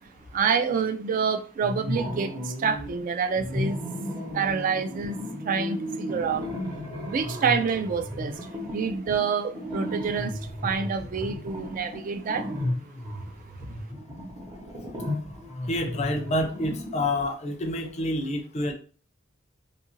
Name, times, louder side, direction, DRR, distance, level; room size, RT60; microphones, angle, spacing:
voice 1, 0.3-3.8 4.3-5.2 5.4-6.5 7.1-12.5, right 6 dB, 45° right, 0.3 m, -27 dB
sound 1, 1.6-3.0 3.3-17.2, left 1 dB, 20° right, 0.9 m, -34 dB
voice 2, 15.7-18.7, left 1 dB, 35° left, 0.5 m, -28 dB
2.7 x 2.4 x 2.9 m
head